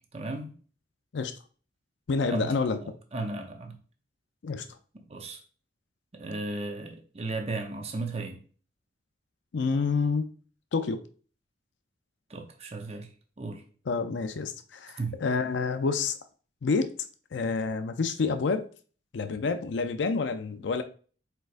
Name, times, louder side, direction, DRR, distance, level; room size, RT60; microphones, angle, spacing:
voice 1, 0.1-0.5 2.3-3.8 5.1-5.4 6.1-8.4 12.3-13.1 13.4-13.6 15.0-15.2, right 3 dB, 35° right, 0.7 m, -35 dB
voice 2, 2.1-2.8 4.4-4.7 9.5-10.3 10.7-11.0 13.9-16.2 16.6-16.9 17.3-18.7 19.1-20.8, left 4 dB, 65° left, 0.4 m, -28 dB
4.6 x 4.5 x 2.5 m
head